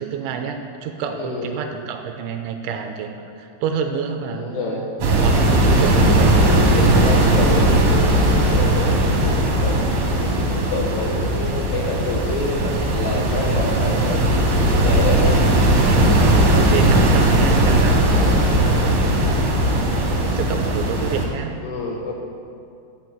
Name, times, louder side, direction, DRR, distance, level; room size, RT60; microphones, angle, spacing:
voice 1, 0.0-4.8 5.2-6.4 16.3-18.1 20.1-21.5, right 7 dB, 80° right, 5 dB, 2.9 m, -28 dB
voice 2, 1.2-1.5 4.3-4.9 6.4-9.8 10.2-15.4 18.1-18.9 21.6-22.1, left 3 dB, 75° left, -1 dB, 2.7 m, -28 dB
sound 1, 5.0-21.2, right 1 dB, 55° right, 2.4 m, -17 dB
12.5 x 6.0 x 8.0 m, 2.4 s
omnidirectional pair, 5.7 m